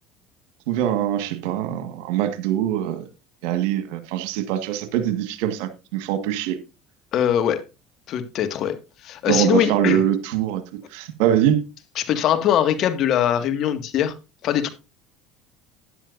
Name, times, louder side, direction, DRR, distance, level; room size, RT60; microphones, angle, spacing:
voice 1, 0.7-3.0 3.4-6.6 9.3-10.6 10.9-11.6, right 11 dB, 75° right, 1.6 m, -23 dB
voice 2, 7.1-7.6 8.1-8.8 9.0-10.0 12.0-14.1 14.4-14.7, left 10 dB, 55° left, 1.9 m, -21 dB
13.0 x 10.0 x 2.6 m
hypercardioid pair, 85°, 0 cm